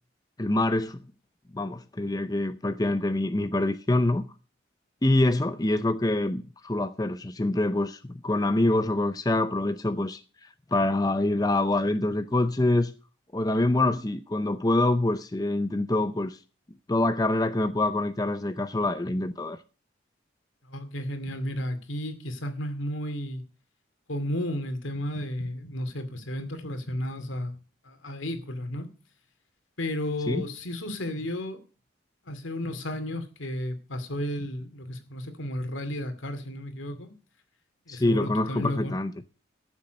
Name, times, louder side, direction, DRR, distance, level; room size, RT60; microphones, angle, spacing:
voice 1, 0.4-1.0 1.5-4.3 5.0-10.2 10.7-12.9 13.3-16.4 16.9-19.6 30.3-30.4 37.9-39.1, left 2 dB, 20° left, 0.6 m, -25 dB
voice 2, 20.7-23.4 24.1-27.6 27.8-28.9 29.8-31.6 32.3-37.1 37.9-38.9, left 1 dB, 85° left, 2.4 m, -33 dB
14.0 x 7.4 x 6.5 m
head